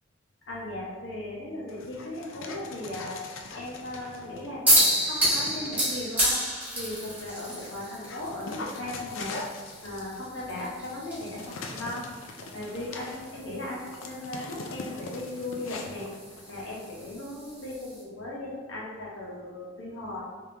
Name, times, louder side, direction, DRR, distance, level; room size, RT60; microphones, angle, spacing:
voice 1, 0.5-3.2 3.5-6.4 6.7-9.3 9.8-12.0 12.5-16.1 16.5-20.2, left 1 dB, 75° left, -5 dB, 1.0 m, -37 dB
Dog, 1.7-4.6 5.1-6.2 6.8-17.2, left 3 dB, 90° left, 0.4 m, -42 dB
sound 1, 4.7-18.0, equal, 10° right, 1.4 m, -31 dB
3.5 x 3.5 x 2.8 m, 1.3 s
head